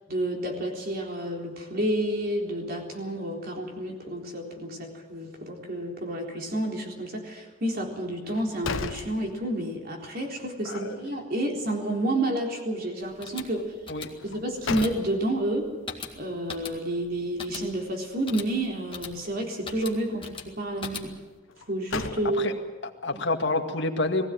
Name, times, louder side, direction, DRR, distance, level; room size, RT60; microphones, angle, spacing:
voice 1, 0.1-13.7 14.2-15.7 16.2-21.1 21.7-22.5, right 1 dB, 50° right, 1 dB, 3.9 m, -30 dB
sound 1, 8.2-9.9 10.3-10.4 14.2-15.5 21.5-22.8, left 4 dB, 90° left, 1.3 m, -35 dB
voice 2, 10.6-11.0 13.9-14.1 22.4-22.5 22.8-24.3, left 2 dB, 65° left, 3 dB, 2.1 m, -28 dB
sound 2, 13.0-21.4, left 5 dB, 25° left, 1.9 m, -42 dB
20.5 x 16.0 x 9.2 m, 1.3 s
head